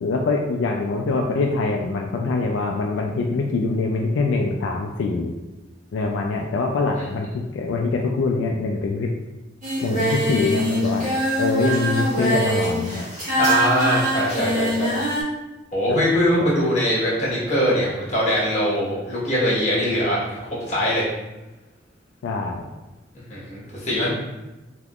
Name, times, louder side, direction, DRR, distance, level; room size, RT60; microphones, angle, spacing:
voice 1, 0.0-5.3 5.9-9.1 9.8-11.1 11.4-13.1 15.9-16.0 16.4-16.5 22.2-22.6, left 3 dB, 80° left, 1 dB, 0.3 m, -24 dB
Singing, 9.6-15.2, right 1 dB, 40° right, 1.4 m, -23 dB
voice 2, 13.3-15.0 15.7-21.1 23.3-24.1, equal, 40° left, -7 dB, 1.3 m, -22 dB
3.4 x 2.9 x 2.4 m, 1.1 s
head